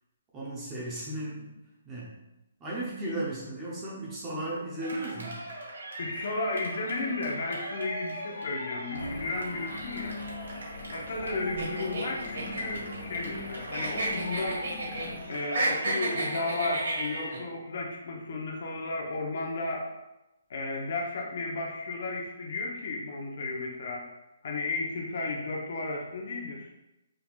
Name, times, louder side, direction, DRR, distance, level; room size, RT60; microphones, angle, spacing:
voice 1, 0.3-1.5 1.8-2.1 2.6-5.4, right 1 dB, 10° right, -6 dB, 0.8 m, -35 dB
Cheering, 4.8-17.5, right 1 dB, 80° right, 1.5 m, -42 dB
voice 2, 6.0-10.1 10.9-15.0 15.3-19.9 20.5-24.0 24.4-26.7, left 3 dB, 45° left, -1 dB, 0.9 m, -33 dB
sound 1, 8.9-15.3, left 2 dB, 80° left, 1.5 m, -41 dB
sound 2, 11.6-13.4 13.7-15.1 15.4-17.4, right 2 dB, 60° right, 1.6 m, -31 dB
5.6 x 3.7 x 2.4 m, 0.98 s
hypercardioid pair, 175°, 0 cm